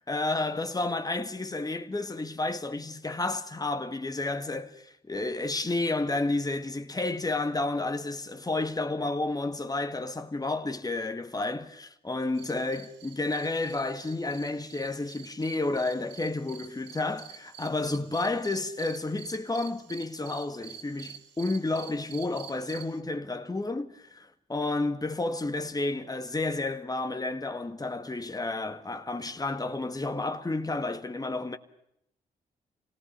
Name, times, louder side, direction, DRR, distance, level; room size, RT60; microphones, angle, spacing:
voice 1, 0.0-31.6, left 2 dB, 20° left, 1.9 m, -31 dB
sound 1, 12.4-23.0, right 9 dB, 80° right, 1.2 m, -49 dB
25.5 x 18.5 x 6.8 m
hypercardioid pair, 45°, 18 cm